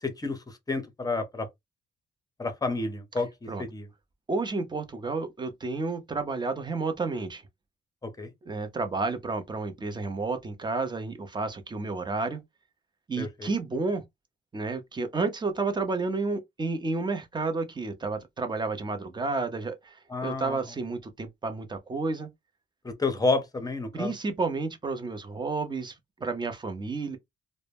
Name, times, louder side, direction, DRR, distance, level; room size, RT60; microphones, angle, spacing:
voice 1, 0.0-0.4 0.7-1.5 2.4-3.3 3.6-3.9 8.0-8.3 13.2-13.5 20.1-20.6 22.8-24.1, left 3 dB, 20° left, 0.7 m, -30 dB
voice 2, 4.3-7.4 8.4-12.4 13.1-14.0 14.5-22.3 23.9-27.2, right 3 dB, 20° right, 0.6 m, -31 dB
2.1 x 2.1 x 3.3 m
cardioid pair, 90°, 20 cm